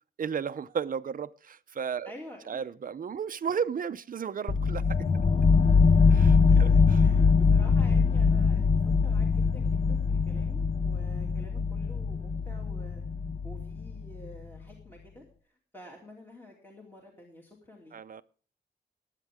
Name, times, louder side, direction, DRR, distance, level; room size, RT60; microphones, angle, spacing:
voice 1, 0.2-2.1 2.5-5.0 6.1-7.0 17.9-18.2, right 7 dB, 55° right, 0.6 m, -34 dB
voice 2, 2.0-2.4 6.5-6.6 6.9-13.1 13.4-15.2 15.7-17.9, left 1 dB, 10° left, 2.7 m, -49 dB
sound 1, 4.5-14.3, left 5 dB, 35° left, 0.7 m, -23 dB
20.5 x 9.1 x 3.6 m
wide cardioid pair, 180°, 17 cm